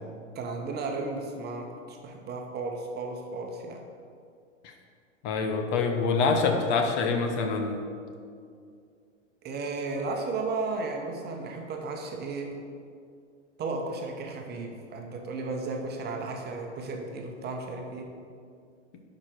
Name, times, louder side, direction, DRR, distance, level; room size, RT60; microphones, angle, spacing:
voice 1, 0.3-3.9 9.4-12.5 13.6-18.1, right 3 dB, 25° right, 2 dB, 1.1 m, -34 dB
voice 2, 5.2-7.8, left 4 dB, 40° left, 5 dB, 1.0 m, -26 dB
11.5 x 5.2 x 4.5 m, 2.3 s
hypercardioid pair, 105°, 37 cm